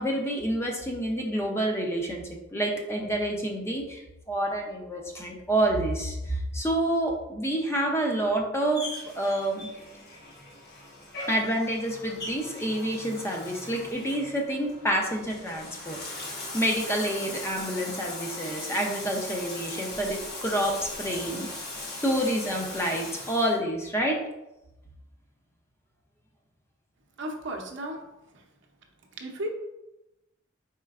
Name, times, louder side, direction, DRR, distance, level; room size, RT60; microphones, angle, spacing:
voice 1, 0.0-2.2 2.5-4.0 4.3-8.9 9.1-9.7 11.3-16.0 16.5-24.2, right 1 dB, 15° left, 0 dB, 0.6 m, -28 dB
Bathtub (filling or washing), 8.7-23.6, left 2 dB, 55° left, 1.1 m, -39 dB
voice 2, 27.2-28.0 28.3-28.4 29.2-29.5, right 1 dB, 65° right, 2 dB, 0.6 m, -34 dB
4.3 x 4.2 x 2.4 m, 0.94 s
head